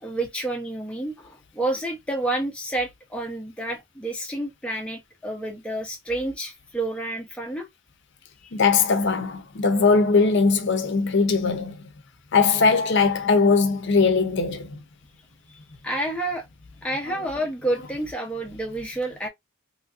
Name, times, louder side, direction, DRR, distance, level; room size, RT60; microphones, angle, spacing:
voice 1, 0.0-7.7 15.5-16.5 16.8-19.3, right 1 dB, 5° left, 0.5 m, -29 dB
voice 2, 8.5-11.8 12.3-14.8, left 4 dB, 55° left, 0.6 m, -20 dB
3.0 x 2.6 x 2.4 m
head